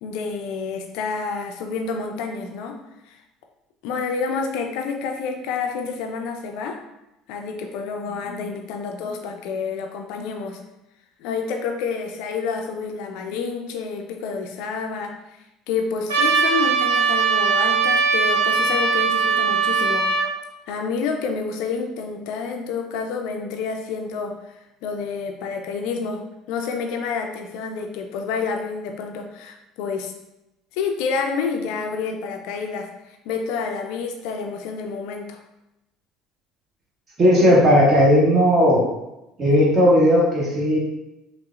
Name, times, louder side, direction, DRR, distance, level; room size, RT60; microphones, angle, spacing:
voice 1, 0.0-2.8 3.1-3.2 3.8-6.8 7.3-10.6 11.2-15.4 15.7-20.1 20.7-24.5 24.8-30.1 30.7-35.4, left 5 dB, 60° left, 3 dB, 0.4 m, -29 dB
Trumpet, 16.1-20.3, right 5 dB, 75° right, 0.5 m, -20 dB
voice 2, 37.2-38.8 39.4-40.8, equal, 35° right, -5 dB, 1.4 m, -16 dB
5.2 x 2.0 x 2.4 m, 0.93 s
figure-of-eight pair, 60°, 0 cm